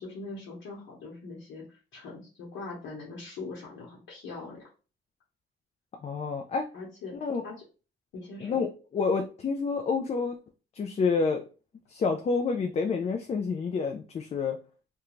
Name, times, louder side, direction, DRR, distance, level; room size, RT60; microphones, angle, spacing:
voice 1, 0.0-4.6 6.7-7.1 7.4-7.6 8.1-8.6, left 3 dB, 80° left, -4 dB, 1.0 m, -41 dB
voice 2, 6.0-6.7 7.2-7.4 8.4-10.4 10.7-11.4 11.9-14.6, left 4 dB, 35° left, 4 dB, 0.4 m, -28 dB
2.4 x 2.2 x 3.0 m, 0.35 s
cardioid pair, 90°, 20 cm